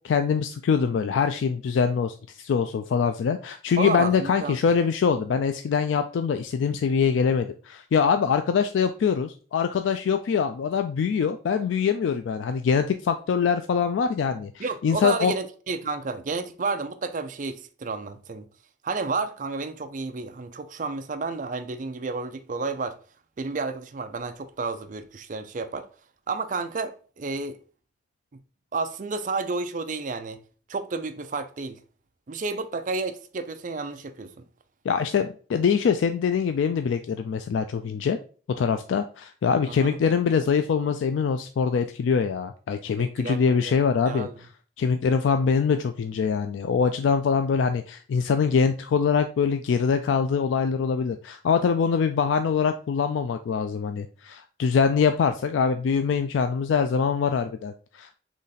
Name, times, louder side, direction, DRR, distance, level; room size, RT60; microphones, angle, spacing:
voice 1, 0.0-15.3 34.9-38.2 38.6-44.3 44.8-58.2, left 6 dB, 85° left, 0.3 m, -24 dB
voice 2, 3.8-4.6 14.6-18.5 18.8-23.0 23.4-25.8 26.3-27.6 28.7-30.4 30.7-31.8 32.3-34.4 39.7-40.0 43.0-43.7 44.1-44.3, right 4 dB, 45° right, 0.4 m, -31 dB
4.0 x 3.1 x 4.0 m
head